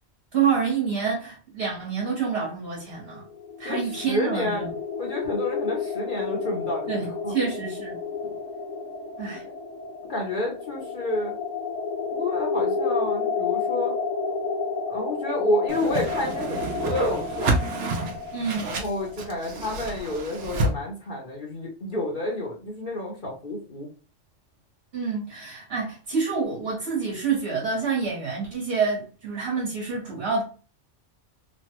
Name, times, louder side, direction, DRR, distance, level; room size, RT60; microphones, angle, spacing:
voice 1, 0.3-3.2 3.6-4.7 6.9-8.0 9.2-9.4 18.3-18.7 24.9-30.4, right 5 dB, 55° right, 1.3 m, -27 dB
sound 1, 3.1-20.0, left 5 dB, 85° left, 0.9 m, -31 dB
voice 2, 3.6-4.6 5.0-7.4 10.1-11.4 12.1-14.0 14.9-17.7 18.6-23.9, left 1 dB, 50° left, 0.8 m, -30 dB
Whoosh swoosh swish, 15.7-20.7, right 2 dB, 75° right, 1.0 m, -29 dB
3.1 x 2.2 x 2.9 m
omnidirectional pair, 1.2 m